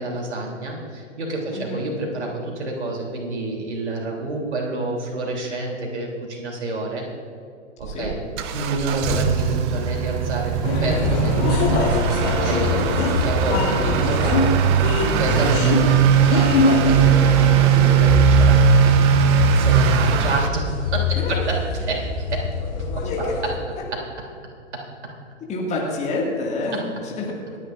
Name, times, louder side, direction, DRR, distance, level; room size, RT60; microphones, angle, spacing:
voice 1, 0.0-7.0 7.8-8.2 8.5-14.5 15.1-19.0 19.5-21.6 21.9-22.5 23.9-24.0 24.7-24.8, right 2 dB, 60° right, -1 dB, 3.5 m, -28 dB
voice 2, 1.5-1.8 7.9-8.1 13.7-14.5 15.4-15.5 17.5-17.9 20.2-20.3 21.1-21.4 23.0-23.4 23.8-23.9 25.5-27.6, left 2 dB, 20° left, -2 dB, 2.2 m, -29 dB
Motor vehicle (road) / Accelerating revving vroom, 7.8-20.5, right 10 dB, 20° right, 0.5 m, -20 dB
sound 1, 10.6-23.6, left 3 dB, 35° left, 2.6 m, -22 dB
27.5 x 9.7 x 2.6 m, 2.4 s
figure-of-eight pair, 115°, 37 cm